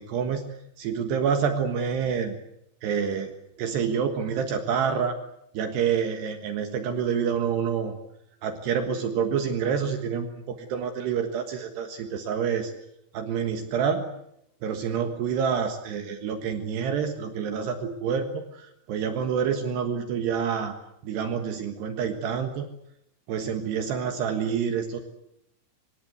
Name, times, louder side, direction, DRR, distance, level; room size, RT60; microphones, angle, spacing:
voice 1, 0.0-2.4 2.8-3.3 3.6-5.1 5.6-8.0 8.4-12.7 13.1-14.1 14.6-20.8 21.0-22.7 23.3-25.0, right 7 dB, 70° right, 7 dB, 3.5 m, -27 dB
25.5 x 23.0 x 8.1 m, 0.78 s
omnidirectional pair, 5.2 m